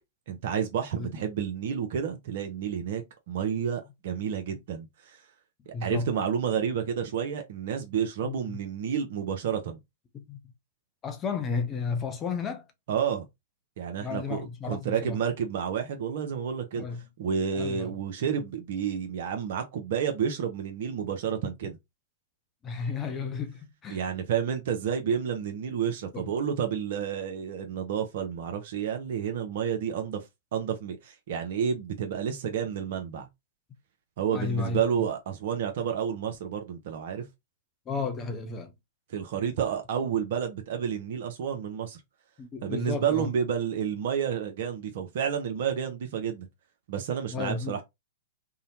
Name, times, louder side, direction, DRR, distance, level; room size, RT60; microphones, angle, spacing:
voice 1, 0.3-3.0 3.3-5.2 5.7-9.8 12.9-13.3 13.8-16.8 17.2-21.8 23.9-30.2 30.5-33.3 34.2-37.3 39.1-42.0 42.6-46.5 46.9-47.8, right 8 dB, 60° right, 0.5 m, -30 dB
voice 2, 5.7-6.1 8.2-8.6 10.1-10.4 11.0-12.7 14.0-15.2 16.8-17.0 17.5-17.9 22.6-24.0 26.1-26.3 34.3-34.8 37.9-38.7 42.4-43.3 47.3-47.8, left 5 dB, 25° left, 0.6 m, -33 dB
2.7 x 2.1 x 2.7 m
hypercardioid pair, 110°, 0 cm